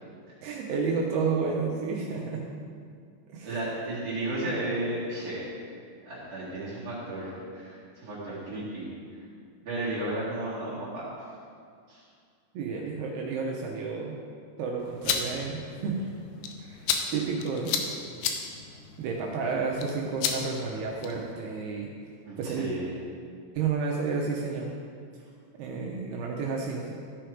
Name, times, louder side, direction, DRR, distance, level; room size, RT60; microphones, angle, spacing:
voice 1, 0.4-2.4 3.3-3.6 12.5-14.2 14.6-16.0 16.6-17.9 19.0-21.9 22.4-22.7 23.5-24.7 25.6-26.9, right 5 dB, 80° right, -1 dB, 2.3 m, -31 dB
voice 2, 3.4-5.5 6.0-8.9 9.6-11.1 11.9-12.0 15.3-15.4 22.2-22.9, right 1 dB, 55° right, -10 dB, 1.9 m, -33 dB
sound 1, 14.8-21.3, left 7 dB, 80° left, 2.8 m, -34 dB
13.5 x 5.0 x 4.5 m, 2.2 s
omnidirectional pair, 5.4 m